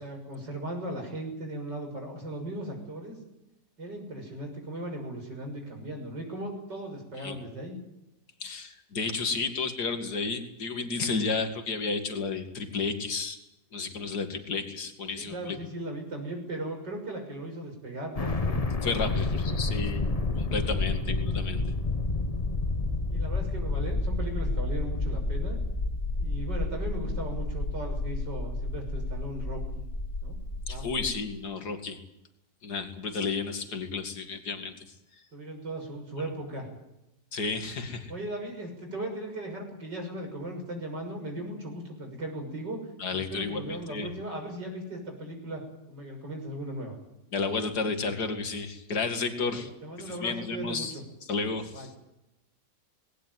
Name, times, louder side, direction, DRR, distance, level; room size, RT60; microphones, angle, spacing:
voice 1, 0.0-3.2 3.8-7.8 15.2-19.8 23.1-25.6 26.2-29.9 30.2-30.4 30.7-31.1 35.3-36.7 38.1-42.8 43.1-45.6 45.9-47.0 49.5-50.9 51.7-51.9, right 1 dB, 75° right, 2 dB, 7.2 m, -37 dB
voice 2, 8.4-13.4 13.7-15.6 18.8-21.6 30.7-32.0 32.6-34.9 37.3-38.1 43.0-44.1 47.3-49.7 50.0-51.0 51.3-51.9, left 4 dB, 65° left, 6 dB, 2.8 m, -32 dB
sound 1, 18.2-31.2, left 3 dB, 25° left, 1.2 m, -30 dB
20.0 x 18.0 x 9.4 m, 0.91 s
omnidirectional pair, 1.9 m